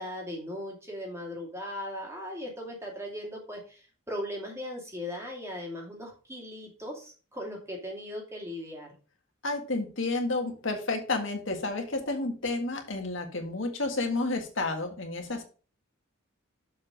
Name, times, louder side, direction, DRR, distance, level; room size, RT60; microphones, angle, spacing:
voice 1, 0.0-8.9, left 1 dB, 15° right, 0 dB, 2.4 m, -38 dB
voice 2, 9.4-15.4, left 2 dB, 65° left, 4 dB, 1.8 m, -31 dB
7.1 x 5.1 x 5.0 m, 0.36 s
head